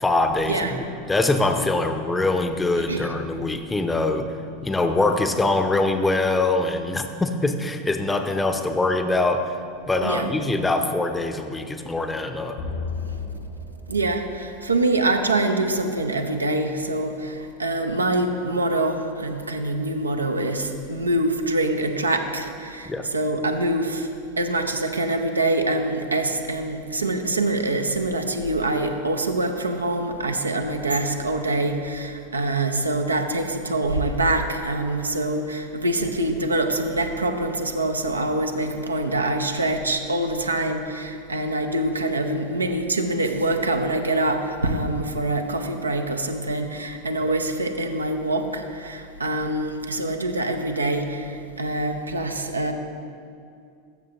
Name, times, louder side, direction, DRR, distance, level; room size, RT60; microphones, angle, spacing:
voice 1, 0.0-4.3 4.6-9.4 9.9-12.6 22.9-23.1, left 2 dB, 10° left, 7 dB, 0.6 m, -23 dB
sound 1, 12.6-15.3, left 4 dB, 55° left, 1.0 m, -34 dB
voice 2, 13.9-24.1 24.4-52.7, right 2 dB, 85° right, 5 dB, 0.5 m, -25 dB
12.5 x 6.5 x 2.9 m, 2.4 s
figure-of-eight pair, 85°, 0 cm